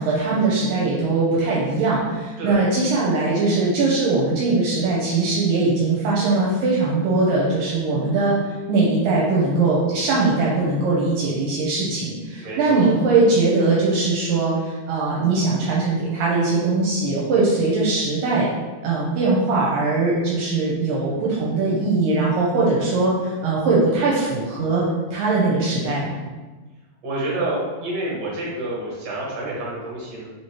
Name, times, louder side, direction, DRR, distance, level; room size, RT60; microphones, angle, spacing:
voice 1, 0.0-8.4 8.7-18.5 18.8-24.9 25.1-26.2, right 3 dB, 80° right, -5 dB, 2.3 m, -21 dB
voice 2, 12.4-12.9 27.0-30.2, right 2 dB, 55° right, -6 dB, 2.2 m, -28 dB
5.2 x 3.1 x 2.9 m, 1.3 s
omnidirectional pair, 4.1 m